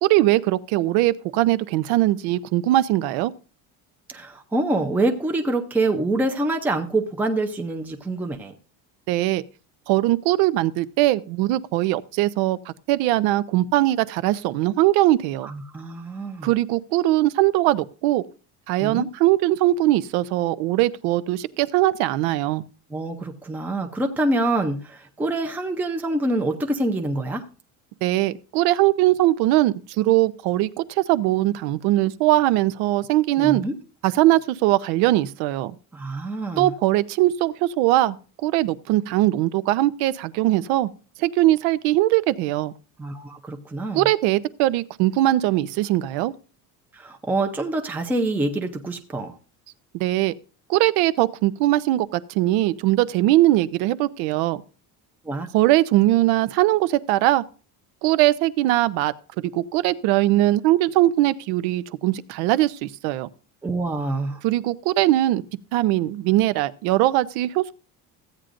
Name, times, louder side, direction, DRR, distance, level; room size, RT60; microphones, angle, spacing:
voice 1, 0.0-3.3 9.1-9.4 9.9-15.5 16.4-18.2 18.7-22.6 28.0-33.6 34.0-35.7 36.6-38.2 38.4-40.9 41.2-42.7 43.9-46.3 49.9-50.3 50.7-54.6 55.5-57.4 58.0-59.1 59.5-63.3 64.4-65.4 65.7-67.7, right 16 dB, 80° right, 0.7 m, -21 dB
voice 2, 4.1-8.5 15.4-16.5 18.8-19.1 22.9-27.4 33.4-33.7 35.9-36.7 43.0-44.0 46.9-49.3 55.2-55.5 63.6-64.4, right 2 dB, 5° right, 0.6 m, -26 dB
15.0 x 9.0 x 2.5 m
cardioid pair, 170°, 37 cm